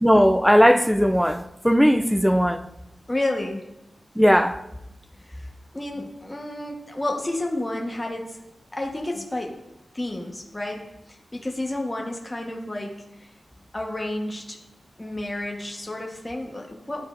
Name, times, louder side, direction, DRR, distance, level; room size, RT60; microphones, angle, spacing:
voice 1, 0.0-2.7 4.2-4.6, equal, ahead, 0.5 m, -18 dB
voice 2, 3.1-3.7 5.2-5.5 5.7-8.4 8.7-9.5 9.9-13.3 13.7-14.6 15.0-17.1, left 1 dB, 20° left, 1.1 m, -31 dB
12.0 x 4.3 x 2.5 m
cardioid pair, 65°, 0 cm